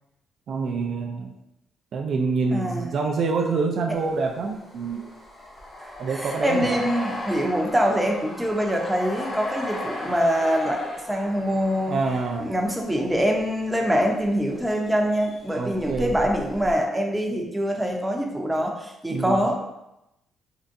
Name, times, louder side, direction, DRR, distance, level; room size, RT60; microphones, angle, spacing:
voice 1, 0.5-1.4 1.9-5.0 6.0-6.8 11.9-12.5 15.5-16.1 19.1-19.5, right 4 dB, 60° right, 2 dB, 0.3 m, -26 dB
voice 2, 2.5-2.9 5.8-12.0 12.4-19.5, equal, 10° right, 1 dB, 0.5 m, -24 dB
sound 1, 3.9-13.4 14.4-14.9 15.1-16.8, left 1 dB, 35° left, 0.8 m, -37 dB
3.7 x 2.2 x 2.6 m, 0.88 s
cardioid pair, 90°, 0 cm